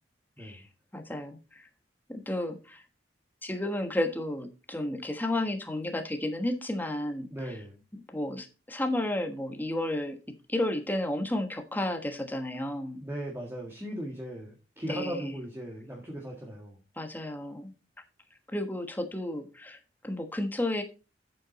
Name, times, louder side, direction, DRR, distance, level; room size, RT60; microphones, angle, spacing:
voice 1, 0.4-1.7 2.1-2.9 3.4-7.6 7.9-10.2 10.5-13.0 14.9-15.3 16.9-17.7 18.5-20.8, left 1 dB, 10° left, 6 dB, 1.3 m, -32 dB
voice 2, 7.3-7.8 13.0-16.8, right 1 dB, 15° right, -1 dB, 1.7 m, -38 dB
8.6 x 7.7 x 4.1 m, 0.32 s
head